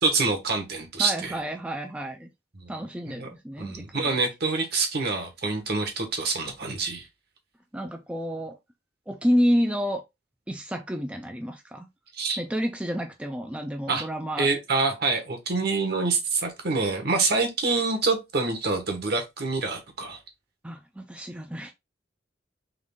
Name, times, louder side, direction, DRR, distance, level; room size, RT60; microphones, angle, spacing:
voice 1, 0.0-1.4 2.6-2.7 3.2-3.3 3.6-7.1 12.1-12.4 13.9-14.0 14.4-20.2, right 3 dB, 60° right, 1.3 m, -26 dB
voice 2, 1.0-2.3 2.7-4.2 7.7-8.6 9.1-10.0 10.5-11.9 12.4-14.5 20.6-21.7, equal, 5° right, 0.4 m, -29 dB
3.8 x 3.1 x 3.4 m
head